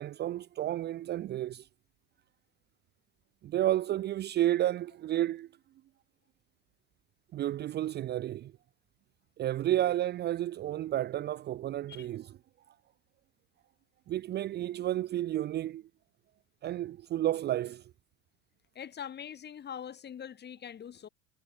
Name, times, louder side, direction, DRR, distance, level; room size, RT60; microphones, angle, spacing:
voice 1, 0.0-1.7 3.4-5.5 7.3-8.5 9.4-12.3 14.1-15.8 16.6-17.8, right 13 dB, 30° right, 0.7 m, -31 dB
voice 2, 18.7-21.1, left 8 dB, 30° left, 6.4 m, -43 dB
hypercardioid pair, 95°, 32 cm